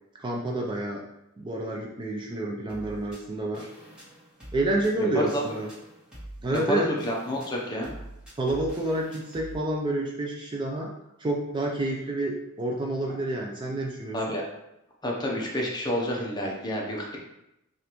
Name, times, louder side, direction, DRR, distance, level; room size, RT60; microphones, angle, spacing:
voice 1, 0.2-1.0 1.4-3.7 4.5-5.7 6.4-6.9 8.4-10.9 11.2-14.2, right 1 dB, 20° right, -1 dB, 0.4 m, -29 dB
sound 1, 2.7-9.5, right 1 dB, 5° right, 1.2 m, -46 dB
voice 2, 5.0-5.4 6.5-7.9 14.1-14.4 15.0-17.2, equal, 20° left, -2 dB, 0.7 m, -29 dB
5.0 x 2.5 x 3.0 m, 0.86 s
head